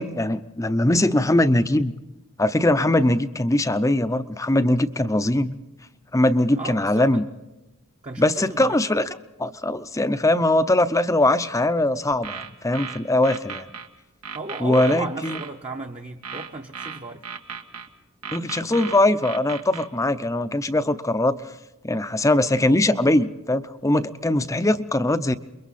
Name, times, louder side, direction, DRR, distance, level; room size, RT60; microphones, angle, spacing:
voice 1, 0.0-1.9 2.4-5.5 6.1-7.2 8.2-13.7 14.6-15.4 18.3-21.4 21.8-25.3, left 1 dB, 15° left, 11 dB, 0.6 m, -21 dB
voice 2, 6.5-7.2 8.0-8.8 14.3-17.2 18.7-18.9, right 2 dB, 30° right, 1 dB, 0.9 m, -35 dB
sound 1, 12.1-13.9 14.2-15.5 16.2-17.9 18.2-19.9, right 6 dB, 90° right, 1.7 m, -35 dB
28.5 x 22.5 x 4.2 m, 1.0 s
head